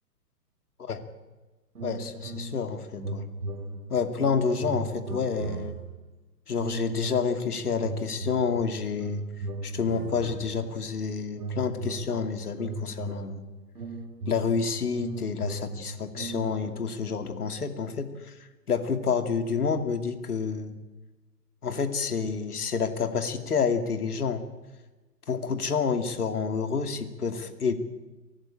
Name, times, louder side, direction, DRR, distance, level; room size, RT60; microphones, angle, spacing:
voice 1, 1.8-3.3 3.9-5.8 6.5-9.2 9.6-13.4 14.3-18.3 18.7-20.8 21.6-24.4 25.3-27.7, left 5 dB, 65° left, 8 dB, 2.7 m, -29 dB
sound 1, 1.8-2.7 3.0-6.0 6.6-7.4 7.8-10.9 11.4-16.7, right 2 dB, 60° right, 6.3 m, -37 dB
23.5 x 18.0 x 9.0 m, 1.2 s
figure-of-eight pair, 125°, 49 cm